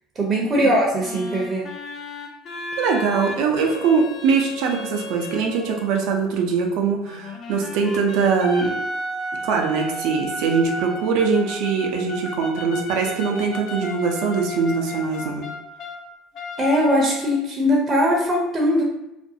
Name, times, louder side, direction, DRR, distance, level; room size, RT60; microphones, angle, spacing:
voice 1, 0.2-1.7 16.6-18.8, equal, 30° right, -3 dB, 0.6 m, -20 dB
sound 1, 1.0-6.1 7.0-16.0 16.3-17.4, left 1 dB, 55° left, 0.6 m, -33 dB
voice 2, 2.8-8.7 9.4-15.4, right 5 dB, 70° right, 2 dB, 0.5 m, -22 dB
2.5 x 2.2 x 2.7 m, 0.90 s
hypercardioid pair, 80°, 0 cm